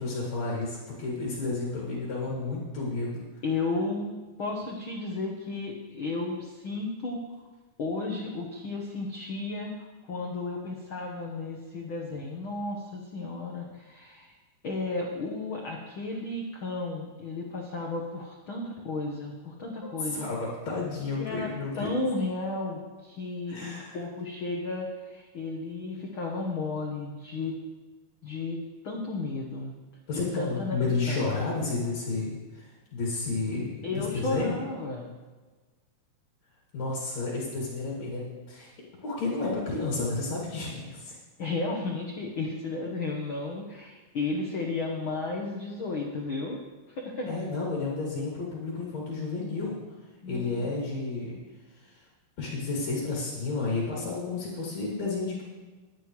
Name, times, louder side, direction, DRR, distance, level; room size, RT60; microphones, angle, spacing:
voice 1, 0.0-3.2 19.8-21.9 23.5-24.0 30.1-34.6 36.7-38.7 39.0-41.1 47.3-49.8 50.3-51.4 51.8-52.0 52.4-55.4, left 3 dB, 50° left, -4 dB, 3.5 m, -31 dB
voice 2, 3.4-7.2 7.8-14.3 14.6-20.3 21.1-27.6 28.2-29.7 30.1-31.3 33.8-35.1 41.1-46.6 46.9-47.3 50.2-50.7, left 3 dB, 75° left, 0 dB, 1.1 m, -33 dB
21.5 x 9.9 x 3.2 m, 1.3 s
omnidirectional pair, 4.3 m